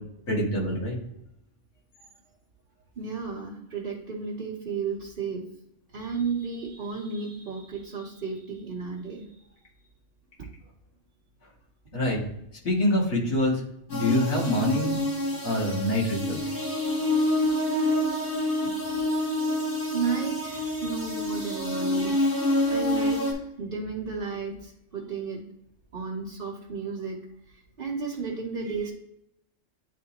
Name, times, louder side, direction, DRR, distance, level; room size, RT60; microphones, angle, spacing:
voice 1, 0.3-1.0 11.9-12.2 12.6-13.6 13.9-15.0 15.4-16.4, left 1 dB, 80° left, -3 dB, 2.4 m, -25 dB
voice 2, 3.0-5.5 5.9-9.4 17.8-18.0 19.9-25.4 25.9-28.9, right 5 dB, 45° right, -5 dB, 1.1 m, -33 dB
sound 1, 13.9-23.3, left 1 dB, 45° left, 1.8 m, -27 dB
10.0 x 3.4 x 2.9 m, 0.78 s
omnidirectional pair, 1.4 m